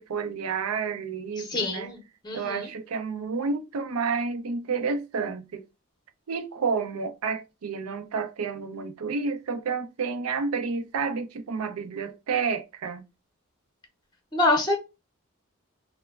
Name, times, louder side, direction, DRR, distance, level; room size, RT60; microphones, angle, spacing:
voice 1, 0.0-1.9 2.3-5.6 6.3-13.0, right 5 dB, 90° right, 0.5 m, -30 dB
voice 2, 1.5-2.0 2.2-2.7 14.3-14.8, left 2 dB, 20° left, 0.6 m, -25 dB
3.1 x 2.1 x 2.3 m
head